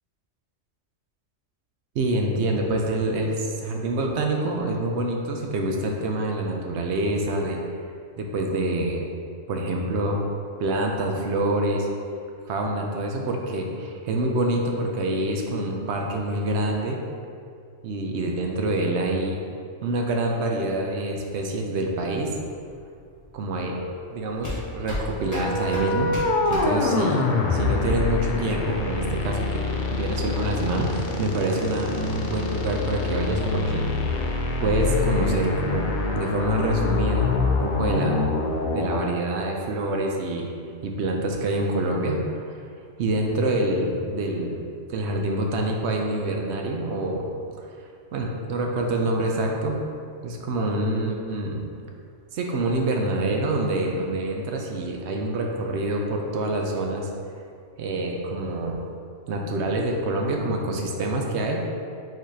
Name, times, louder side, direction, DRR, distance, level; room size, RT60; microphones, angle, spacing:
voice 1, 1.9-7.6 8.2-9.1 9.5-10.2 10.6-11.9 12.5-17.0 17.8-19.4 19.8-22.3 23.3-23.8 24.1-26.1 26.5-34.1 34.6-38.3 38.7-40.5 40.8-42.5 43.0-44.6 44.9-47.3 47.6-47.7 48.1-49.8 50.2-51.6 52.3-57.1 57.8-58.8 59.3-61.6, right 1 dB, 65° right, 1 dB, 0.8 m, -26 dB
sound 1, 21.4-27.3, left 1 dB, 15° left, 1.2 m, -35 dB
sound 2, 25.2-39.1, left 3 dB, 65° left, 0.5 m, -25 dB
4.7 x 4.0 x 2.7 m, 2.3 s
omnidirectional pair, 1.3 m